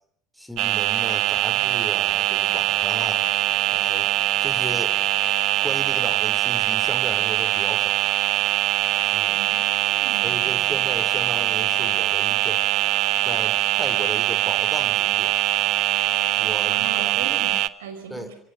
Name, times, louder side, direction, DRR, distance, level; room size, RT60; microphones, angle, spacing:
voice 1, 0.3-3.3 3.7-4.1 4.4-5.0 5.6-8.0 9.1-9.4 10.2-12.6 13.2-15.4 16.4-17.3 18.1-18.3, equal, ahead, 9 dB, 3.4 m, -35 dB
sound 1, 0.6-17.7, right 16 dB, 50° right, 0.9 m, -22 dB
voice 2, 9.4-11.1 16.7-18.4, right 6 dB, 65° right, 8 dB, 5.2 m, -40 dB
26.5 x 24.0 x 6.5 m, 0.70 s
figure-of-eight pair, 70°, 0 cm